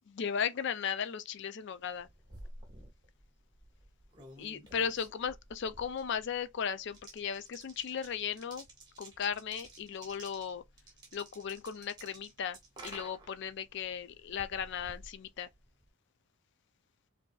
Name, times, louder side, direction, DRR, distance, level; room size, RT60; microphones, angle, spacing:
voice 1, 0.2-2.1 4.4-8.6 9.0-10.6 11.1-12.6 12.8-15.5, left 7 dB, 50° left, 0.4 m, -36 dB
sound 1, 1.8-15.9, right 2 dB, 20° right, 1.5 m, -53 dB
5.3 x 2.7 x 2.3 m
head